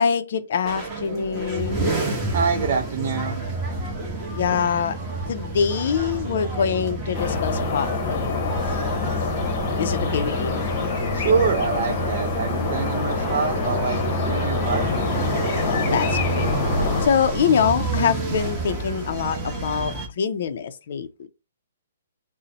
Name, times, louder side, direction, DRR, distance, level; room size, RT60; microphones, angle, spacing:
voice 1, 0.0-1.9 4.3-5.0 5.3-8.5 9.8-10.6 15.6-16.5 17.0-21.3, left 7 dB, 50° left, 0.4 m, -24 dB
sound 1, 0.6-2.6 2.9-3.0 3.3-19.6, right 2 dB, 70° right, 0.9 m, -39 dB
sound 2, 0.7-20.1, right 3 dB, 10° right, 0.9 m, -29 dB
voice 2, 2.3-3.5 11.1-14.0 14.3-15.0, right 5 dB, 50° right, 0.5 m, -25 dB
sound 3, 7.1-17.1, left 5 dB, 30° left, 0.8 m, -26 dB
4.0 x 2.0 x 4.0 m
hypercardioid pair, 165°, 0 cm